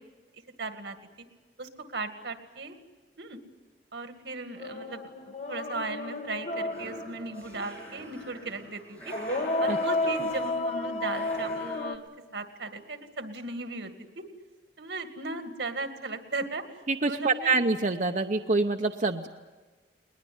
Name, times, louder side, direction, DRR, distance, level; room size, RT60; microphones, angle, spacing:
voice 1, 0.6-1.0 1.6-2.8 3.2-3.4 3.9-9.2 9.6-12.1 12.3-14.3 14.8-16.8 17.0-17.5, right 3 dB, 85° right, 7 dB, 2.1 m, -37 dB
sound 1, 4.6-7.8 9.1-12.0, left 2 dB, 45° left, 1.5 m, -32 dB
sound 2, 6.5-11.8, equal, 10° left, 7.2 m, -45 dB
voice 2, 16.9-19.3, right 3 dB, 45° right, 5 dB, 0.8 m, -26 dB
21.0 x 20.0 x 9.6 m, 1.3 s
head